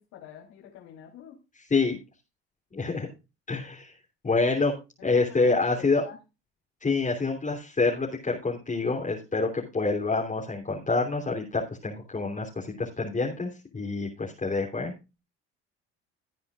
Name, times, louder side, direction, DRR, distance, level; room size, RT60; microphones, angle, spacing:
voice 1, 0.0-1.4 5.0-6.2, left 9 dB, 70° left, -1 dB, 3.6 m, -47 dB
voice 2, 2.7-3.1 3.5-3.9 4.2-4.7 5.0-6.0 6.8-14.9, left 3 dB, 25° left, -1 dB, 3.3 m, -27 dB
16.5 x 9.5 x 2.5 m, 0.28 s
hypercardioid pair, 65°, 30 cm